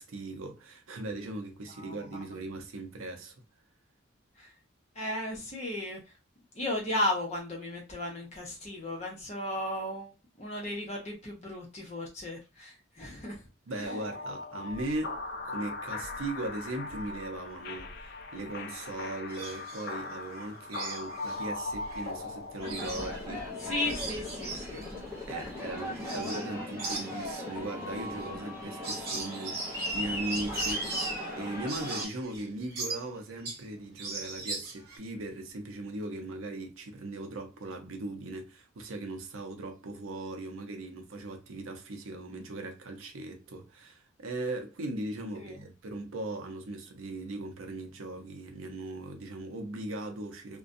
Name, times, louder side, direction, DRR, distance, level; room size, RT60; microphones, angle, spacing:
voice 1, 0.0-3.3 13.7-15.2 15.4-23.7 25.3-50.6, right 2 dB, 85° right, 0.6 m, -39 dB
voice 2, 1.8-2.2 4.4-4.5 4.9-6.0 6.5-10.1 10.4-13.4 23.6-24.9 45.4-45.6, left 1 dB, 30° left, 0.9 m, -35 dB
sound 1, 13.8-26.9, left 3 dB, 50° left, 0.3 m, -41 dB
sound 2, 19.3-19.9 20.3-22.1 22.4-26.5 26.8-33.7 34.0-35.0, right 3 dB, 50° right, 0.9 m, -40 dB
Aircraft, 22.6-32.0, left 1 dB, 10° right, 0.7 m, -37 dB
2.5 x 2.2 x 2.5 m
head